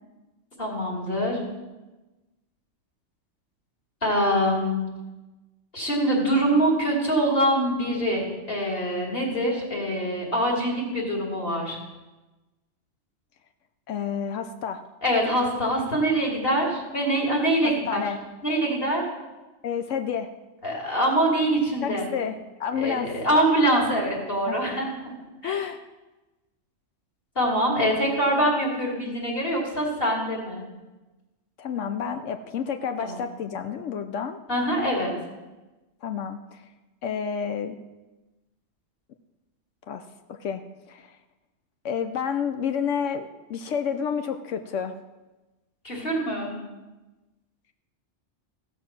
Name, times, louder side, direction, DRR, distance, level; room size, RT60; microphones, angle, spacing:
voice 1, 0.6-1.4 4.0-4.8 5.7-11.8 15.0-18.0 18.4-19.0 20.6-22.1 22.7-25.1 25.4-25.6 27.3-30.6 33.0-33.2 34.5-35.1 45.8-46.5, right 1 dB, 50° left, -3 dB, 3.3 m, -24 dB
voice 2, 13.9-14.8 17.6-18.2 19.6-20.3 21.8-23.1 24.5-24.6 25.4-25.8 31.6-34.4 36.0-36.6 37.0-37.8 39.9-40.0 40.3-40.6 40.9-41.2 41.8-44.9, left 7 dB, 80° left, 8 dB, 1.0 m, -30 dB
15.5 x 6.3 x 6.0 m, 1.1 s
omnidirectional pair, 1.3 m